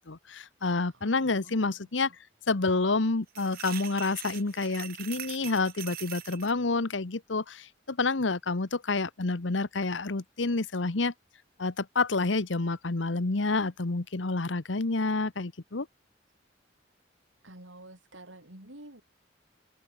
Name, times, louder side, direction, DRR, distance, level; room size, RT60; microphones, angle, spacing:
voice 1, 0.1-2.1 2.5-11.1 11.6-15.9, left 3 dB, 75° left, 1.1 m, -29 dB
voice 2, 0.9-1.9 17.4-19.0, right 1 dB, 85° right, 7.4 m, -50 dB
sound 1, 3.3-6.5, right 13 dB, 50° right, 1.0 m, -42 dB
head